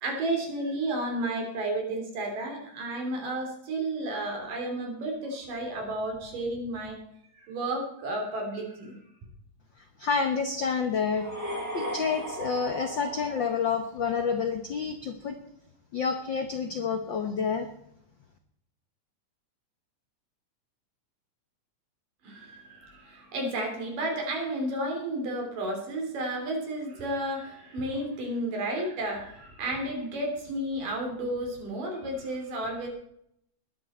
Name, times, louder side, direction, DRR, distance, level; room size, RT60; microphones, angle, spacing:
voice 1, 0.0-7.0 7.4-9.0 22.2-32.9, right 1 dB, 85° right, 2 dB, 4.8 m, -32 dB
voice 2, 10.0-11.3 11.7-15.4 15.9-17.7, left 5 dB, 85° left, 6 dB, 1.0 m, -29 dB
sound 1, 11.1-14.1, right 1 dB, 5° right, 3.4 m, -37 dB
20.0 x 11.0 x 4.4 m, 0.75 s
omnidirectional pair, 3.7 m